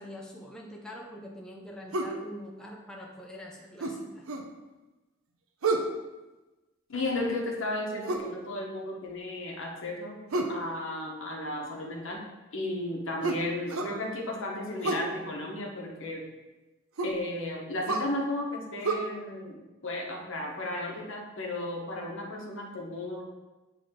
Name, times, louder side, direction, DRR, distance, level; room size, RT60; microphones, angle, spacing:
voice 1, 0.0-4.3, equal, 5° left, -2 dB, 0.6 m, -44 dB
sound 1, 1.9-2.2 3.8-4.5 5.6-5.9 8.0-8.3 10.3-10.6 13.2-14.0 14.8-15.1 17.0-17.2 17.9-18.1 18.8-19.0, right 3 dB, 85° right, 0.7 m, -29 dB
voice 2, 6.9-10.2 10.5-12.2 12.5-16.3 17.0-19.6 19.8-23.2, left 1 dB, 65° left, 0 dB, 1.2 m, -34 dB
8.5 x 3.4 x 3.7 m, 1.1 s
head